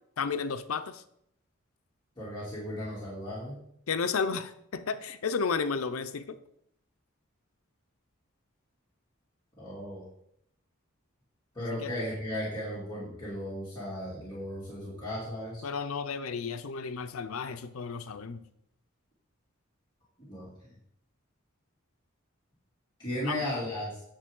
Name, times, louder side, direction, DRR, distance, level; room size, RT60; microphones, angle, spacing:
voice 1, 0.2-1.0 3.9-6.4 11.8-11.9 15.6-18.4 23.3-23.4, left 5 dB, 90° left, 11 dB, 0.6 m, -32 dB
voice 2, 2.2-3.6 9.6-10.1 11.5-15.6 20.2-20.7 23.0-24.0, left 1 dB, 20° left, -9 dB, 2.7 m, -36 dB
9.9 x 6.7 x 3.8 m, 0.73 s
head